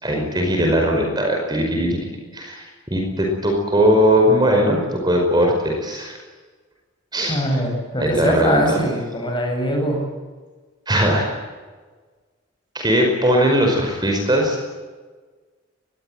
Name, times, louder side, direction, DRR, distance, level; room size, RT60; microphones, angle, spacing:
voice 1, 0.0-2.0 2.3-6.2 7.1-7.4 8.0-8.6 10.9-11.4 12.7-14.6, equal, 20° right, 1 dB, 5.3 m, -19 dB
voice 2, 7.3-10.0, equal, 20° left, 2 dB, 7.9 m, -22 dB
23.5 x 21.5 x 9.3 m, 1.4 s
head